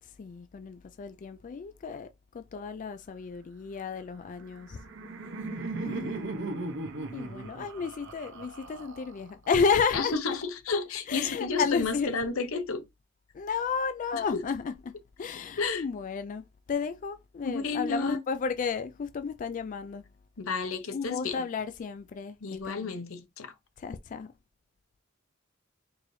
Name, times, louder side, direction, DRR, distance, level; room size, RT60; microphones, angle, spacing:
voice 1, 0.0-4.8 5.8-6.3 7.1-10.1 11.1-12.1 13.3-20.1 20.9-23.0 23.8-24.3, left 5 dB, 40° left, 0.3 m, -32 dB
Laughter, 4.4-9.5, right 2 dB, 65° right, 0.7 m, -37 dB
voice 2, 9.9-12.9 14.1-14.4 15.6-15.8 17.4-18.2 20.4-21.4 22.4-23.5, left 4 dB, 85° left, 0.7 m, -31 dB
4.6 x 3.2 x 2.6 m
head